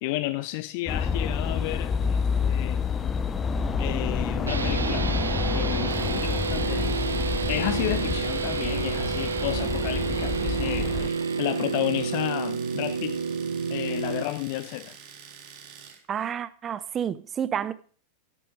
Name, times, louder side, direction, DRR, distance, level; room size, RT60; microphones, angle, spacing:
voice 1, 0.0-2.9 3.8-5.1 5.5-6.9 7.5-13.2 13.7-15.0, left 17 dB, 45° left, 0.5 m, -32 dB
sound 1, 0.9-11.1, left 5 dB, 20° left, 0.9 m, -28 dB
sound 2, 4.5-14.2, right 5 dB, 75° right, 0.5 m, -29 dB
Domestic sounds home sounds, 5.9-16.1, right 7 dB, 40° right, 2.0 m, -47 dB
voice 2, 16.1-17.7, right 8 dB, 25° right, 0.7 m, -30 dB
11.0 x 8.6 x 5.1 m
figure-of-eight pair, 90°, 0 cm